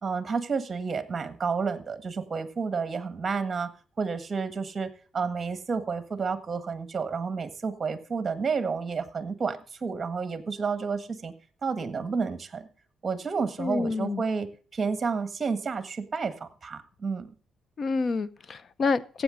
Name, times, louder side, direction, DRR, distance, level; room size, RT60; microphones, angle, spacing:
voice 1, 0.0-3.7 4.0-11.3 11.6-12.7 13.0-17.3, right 5 dB, 35° right, 11 dB, 1.6 m, -30 dB
voice 2, 13.6-14.2 17.8-19.2, left 4 dB, 45° left, 18 dB, 0.7 m, -28 dB
15.0 x 8.5 x 3.9 m, 0.38 s
cardioid pair, 90°, 0 cm